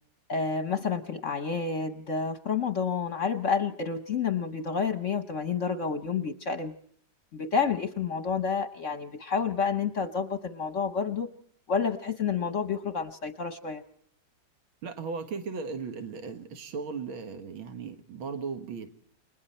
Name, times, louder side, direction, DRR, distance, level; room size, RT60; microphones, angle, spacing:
voice 1, 0.3-6.7 7.3-11.3 11.7-13.8, left 5 dB, 50° left, 9 dB, 1.0 m, -29 dB
voice 2, 14.8-18.9, right 5 dB, 80° right, 8 dB, 2.4 m, -37 dB
29.0 x 22.0 x 4.3 m, 0.63 s
omnidirectional pair, 2.2 m